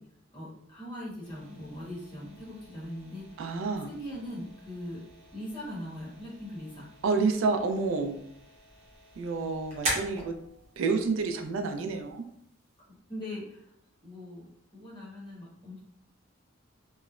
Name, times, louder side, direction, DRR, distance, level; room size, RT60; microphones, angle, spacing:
voice 1, 0.3-3.4 3.9-5.0 5.3-6.9 12.9-13.7 14.0-15.8, left 1 dB, 25° left, -6 dB, 1.0 m, -41 dB
sound 1, 1.2-12.8, right 1 dB, 35° right, 0.7 m, -42 dB
voice 2, 3.4-3.9 7.0-8.2 9.2-10.3 10.8-12.2, right 4 dB, 75° right, 6 dB, 0.3 m, -29 dB
2.9 x 2.0 x 2.4 m, 0.71 s
head